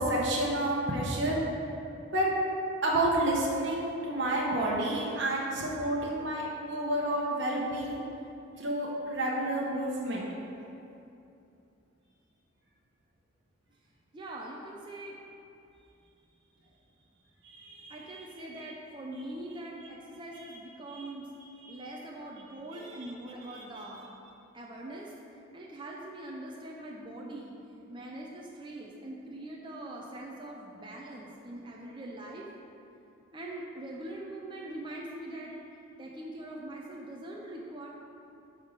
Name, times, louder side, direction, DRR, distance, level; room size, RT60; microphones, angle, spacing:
voice 1, 0.0-1.4 2.1-2.3 2.8-8.0 8.6-10.2 17.4-18.2 20.9-21.0 21.6-21.8 22.7-23.1 23.8-23.9, right 1 dB, 60° right, -4 dB, 1.1 m, -30 dB
voice 2, 14.1-15.2 17.9-21.3 21.7-24.0 24.5-25.1 25.5-27.5 27.9-32.5 33.3-35.6 36.0-37.9, right 1 dB, 25° right, -2 dB, 0.5 m, -42 dB
8.9 x 3.6 x 6.4 m, 2.7 s
head